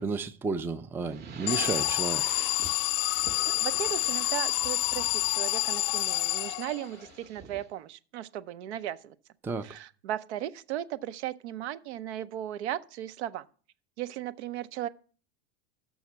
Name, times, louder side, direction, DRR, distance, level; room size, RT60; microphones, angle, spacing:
voice 1, 0.0-2.2 9.4-9.7, right 4 dB, 5° right, 0.3 m, -32 dB
sound 1, 1.0-7.7, right 6 dB, 30° right, 0.8 m, -46 dB
Alarm, 1.5-7.0, left 17 dB, 55° left, 0.4 m, -28 dB
voice 2, 3.5-9.2 9.6-13.4 14.0-14.9, right 12 dB, 80° right, 0.6 m, -36 dB
6.3 x 5.9 x 7.2 m
supercardioid pair, 110°, 33 cm